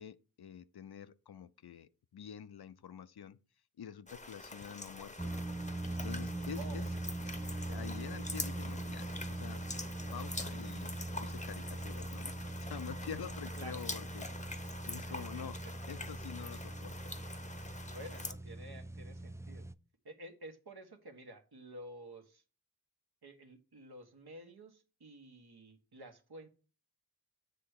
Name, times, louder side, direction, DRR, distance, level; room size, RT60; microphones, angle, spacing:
voice 1, 0.0-3.4 3.8-5.3 6.0-6.9 7.7-9.7 10.1-14.3 14.9-15.6 15.9-17.1, left 8 dB, 75° left, 0.5 m, -47 dB
sound 1, 4.1-18.3, left 2 dB, 20° left, 0.7 m, -45 dB
sound 2, 5.2-19.7, right 2 dB, 10° right, 0.3 m, -42 dB
voice 2, 6.6-6.9 13.6-13.8 15.1-15.7 17.9-19.7 20.0-22.4 23.2-26.5, right 1 dB, 75° right, 1.3 m, -51 dB
7.6 x 3.4 x 6.4 m
wide cardioid pair, 50°, 39 cm